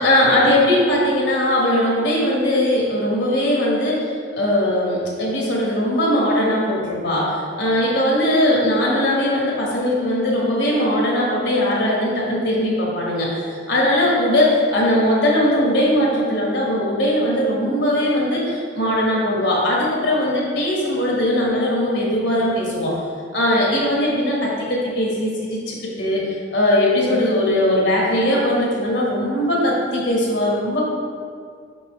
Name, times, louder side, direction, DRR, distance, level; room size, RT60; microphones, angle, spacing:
voice 1, 0.0-4.1 4.4-22.9 23.3-30.9, left 1 dB, 70° left, -4 dB, 1.4 m, -20 dB
5.6 x 5.3 x 3.2 m, 2.2 s
head